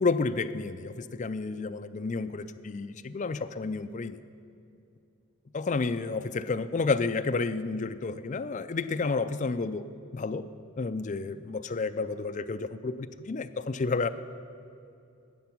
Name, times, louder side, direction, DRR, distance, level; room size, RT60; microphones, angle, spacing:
voice 1, 0.0-4.2 5.5-9.8 10.1-10.5 10.8-14.1, left 4 dB, 35° left, 10 dB, 0.4 m, -30 dB
12.5 x 8.6 x 6.0 m, 2.5 s
head